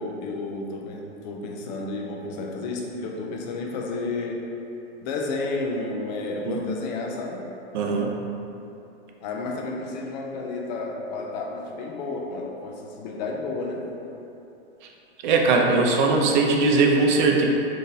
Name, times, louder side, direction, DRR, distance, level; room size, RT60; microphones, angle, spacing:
voice 1, 0.0-4.5 5.0-7.5 9.2-13.9, left 3 dB, 45° left, 0 dB, 0.5 m, -31 dB
voice 2, 7.7-8.1 15.2-17.4, right 3 dB, 50° right, 0 dB, 0.5 m, -20 dB
3.6 x 2.8 x 2.5 m, 2.8 s
hypercardioid pair, 130°, 32 cm